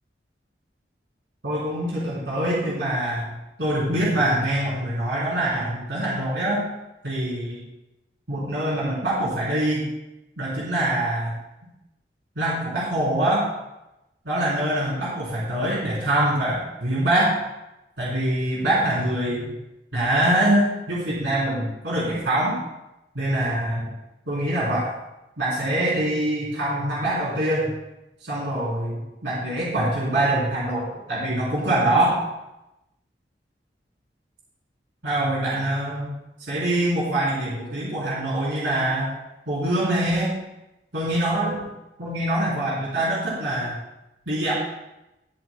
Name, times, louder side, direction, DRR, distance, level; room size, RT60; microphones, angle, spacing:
voice 1, 1.4-6.6 7.0-7.6 8.3-9.9 10.4-11.4 12.3-13.5 14.2-17.4 18.0-19.5 19.9-22.6 23.1-23.9 24.3-24.9 25.4-27.7 28.2-32.2 35.0-36.1 36.5-39.1 39.5-40.3 40.9-41.7 42.0-43.7 44.3-44.5, right 1 dB, 85° right, -6 dB, 3.5 m, -24 dB
21.0 x 7.9 x 2.2 m, 0.94 s
head